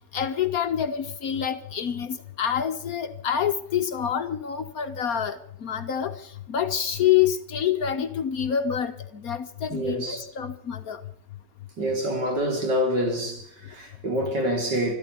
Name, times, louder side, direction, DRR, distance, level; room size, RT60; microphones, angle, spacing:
voice 1, 0.1-6.1 6.5-11.0, left 9 dB, 60° left, 1.2 m, -27 dB
voice 2, 9.7-10.2 11.8-14.9, equal, 65° right, 4.1 m, -26 dB
13.0 x 13.0 x 8.1 m
omnidirectional pair, 2.0 m